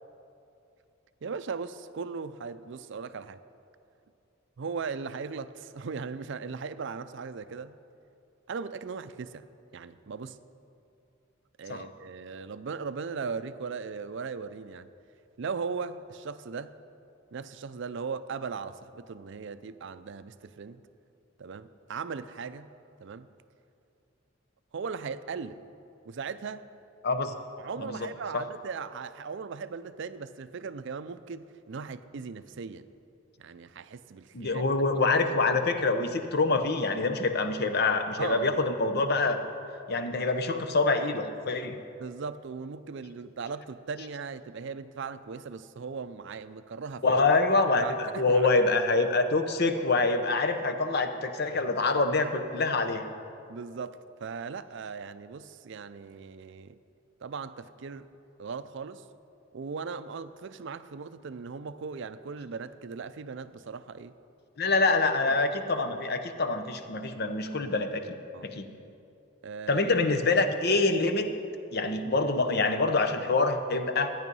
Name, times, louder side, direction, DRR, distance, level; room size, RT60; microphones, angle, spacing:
voice 1, 1.2-3.4 4.6-7.8 8.5-9.5 9.7-10.4 11.6-14.9 15.4-16.7 17.3-20.8 21.4-22.7 23.0-23.3 24.7-25.6 26.0-26.7 27.6-32.9 33.4-34.7 38.2-38.5 42.0-47.2 47.8-48.7 49.0-49.1 53.5-56.8 57.2-58.1 58.4-59.0 59.5-64.1 65.3-65.4 68.3-68.5 69.4-69.9, right 5 dB, 60° right, 13 dB, 0.4 m, -38 dB
voice 2, 34.3-39.4 39.9-41.8 47.0-53.1 64.6-68.0 68.4-68.7 69.7-71.3 71.7-74.1, left 3 dB, 50° left, 8 dB, 0.8 m, -26 dB
13.5 x 9.5 x 5.4 m, 2.6 s
head